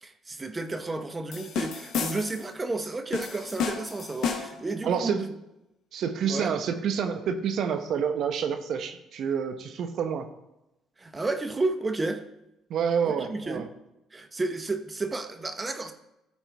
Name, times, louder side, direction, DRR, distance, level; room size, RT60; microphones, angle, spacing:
voice 1, 0.0-5.2 6.3-6.5 11.0-12.2 13.3-13.7 14.1-15.9, right 2 dB, 25° right, 8 dB, 0.9 m, -31 dB
sound 1, 1.3-2.5 3.1-4.7, left 6 dB, 70° left, 1.1 m, -32 dB
voice 2, 4.8-5.3 5.9-10.3 12.7-13.7, right 7 dB, 65° right, 8 dB, 0.9 m, -28 dB
13.0 x 4.4 x 3.4 m, 0.89 s
supercardioid pair, 75°, 0 cm